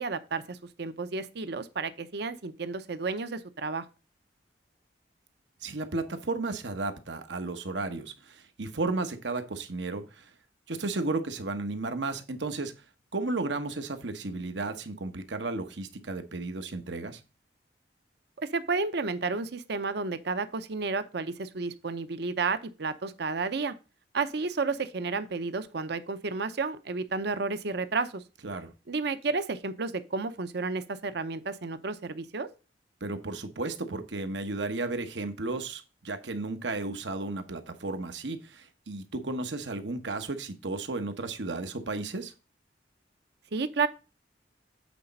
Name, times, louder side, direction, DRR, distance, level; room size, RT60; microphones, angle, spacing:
voice 1, 0.0-3.9 18.4-23.7 24.1-28.2 28.9-32.5 43.5-43.9, right 4 dB, 65° right, 0.7 m, -31 dB
voice 2, 5.6-10.3 10.7-12.7 13.1-17.2 28.4-28.7 33.0-42.3, right 3 dB, 85° right, 1.1 m, -33 dB
8.4 x 4.1 x 5.3 m
head